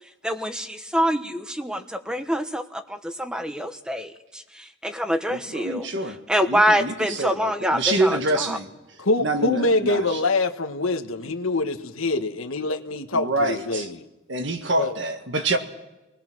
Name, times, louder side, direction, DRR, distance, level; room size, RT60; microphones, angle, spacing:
voice 1, 0.2-5.8 6.3-8.6, equal, 5° right, 1.1 m, -25 dB
voice 2, 5.3-6.2 6.5-8.7 9.2-10.2 13.1-13.9 14.3-15.6, right 2 dB, 60° right, 1.8 m, -26 dB
voice 3, 9.0-14.0 14.8-14.9, left 2 dB, 85° left, 1.4 m, -25 dB
29.5 x 20.0 x 6.2 m
head